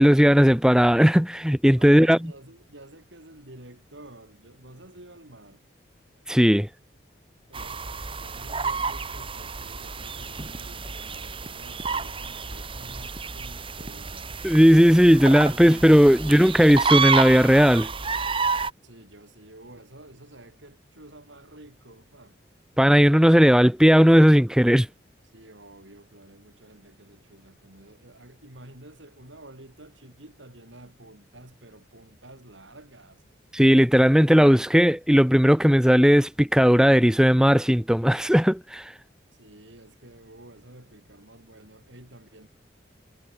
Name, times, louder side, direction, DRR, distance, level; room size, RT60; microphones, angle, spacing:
voice 1, 0.0-2.2 6.3-6.7 14.4-17.9 22.8-24.9 33.5-38.8, equal, 5° right, 0.9 m, -17 dB
voice 2, 1.8-5.6 7.5-14.4 18.8-22.4 25.3-33.2 39.3-42.5, right 1 dB, 80° right, 7.1 m, -49 dB
sound 1, 7.5-18.7, right 5 dB, 30° right, 2.3 m, -30 dB
head